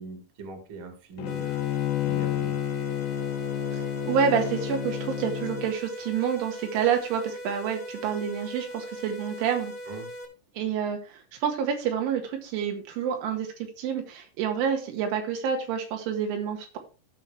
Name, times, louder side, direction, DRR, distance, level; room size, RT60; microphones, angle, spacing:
voice 1, 0.0-1.6 2.0-2.6 9.9-10.1, right 3 dB, 45° right, 5 dB, 1.8 m, -41 dB
Bowed string instrument, 1.2-5.7, left 12 dB, 80° left, 2.8 m, -30 dB
sound 1, 1.2-10.2, equal, 25° left, 0.9 m, -40 dB
voice 2, 3.7-9.7 10.6-13.5 13.8-16.8, right 7 dB, 85° right, 3 dB, 4.2 m, -28 dB
14.5 x 5.9 x 3.3 m, 0.34 s
omnidirectional pair, 5.3 m